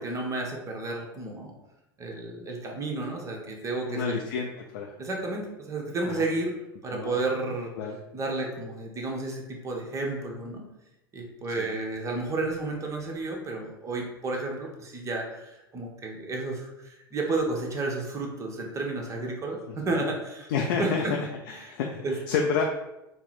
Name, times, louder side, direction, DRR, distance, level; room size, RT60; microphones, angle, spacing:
voice 1, 0.0-1.5 2.0-4.2 5.0-6.5 6.8-7.7 8.1-10.7 11.1-20.5 20.8-21.2 21.5-21.7 22.0-22.2, right 2 dB, 25° right, 0 dB, 0.9 m, -32 dB
voice 2, 3.9-4.9 6.1-6.3 6.9-7.1 7.8-8.0 11.6-11.8 19.7-20.0 20.5-21.2 21.5-22.6, left 6 dB, 60° left, 1 dB, 0.4 m, -30 dB
4.2 x 2.0 x 3.9 m, 0.95 s
figure-of-eight pair, 85°, 13 cm